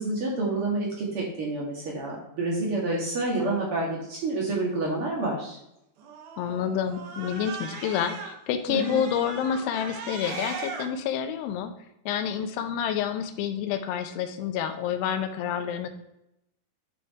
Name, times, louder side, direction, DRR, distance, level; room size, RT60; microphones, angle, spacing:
voice 1, 0.0-5.6 8.7-9.0, right 2 dB, 75° right, -3 dB, 1.3 m, -28 dB
Cat, 6.0-8.3 8.7-10.8, right 5 dB, 90° right, 3.4 m, -38 dB
voice 2, 6.4-11.7 12.1-15.9, left 8 dB, 85° left, 7 dB, 2.9 m, -28 dB
9.6 x 4.1 x 3.6 m, 0.82 s
omnidirectional pair, 4.7 m